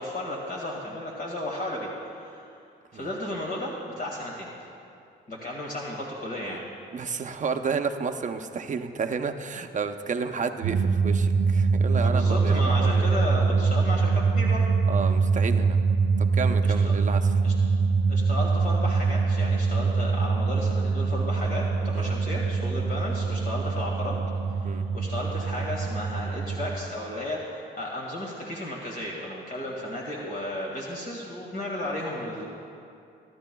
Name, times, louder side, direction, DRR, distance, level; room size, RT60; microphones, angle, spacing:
voice 1, 0.0-2.5 2.9-4.5 5.3-6.6 12.0-14.7 16.6-17.0 17.4-17.5 18.1-24.2 24.5-32.5, left 1 dB, 45° left, -3 dB, 1.9 m, -34 dB
voice 2, 6.9-13.1 13.4-13.6 14.9-15.8 16.2-17.3 21.9-22.1 24.6-24.8, right 5 dB, 40° right, 7 dB, 0.7 m, -31 dB
sound 1, 10.6-26.8, right 4 dB, 80° right, 0.6 m, -24 dB
23.0 x 11.0 x 2.3 m, 2.5 s
cardioid pair, 90°, 20 cm